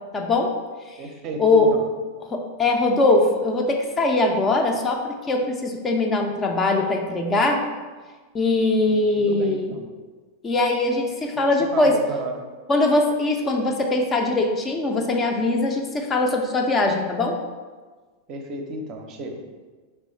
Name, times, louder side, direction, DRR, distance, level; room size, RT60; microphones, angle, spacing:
voice 1, 0.1-0.5 1.4-1.7 2.3-7.6 8.3-9.7 10.4-11.9 12.7-17.4, left 2 dB, 20° left, 2 dB, 0.4 m, -21 dB
voice 2, 1.0-1.9 8.9-9.9 11.2-12.4 18.3-19.4, right 2 dB, 35° right, 3 dB, 0.6 m, -33 dB
3.4 x 3.0 x 4.2 m, 1.4 s
figure-of-eight pair, 90°, 0 cm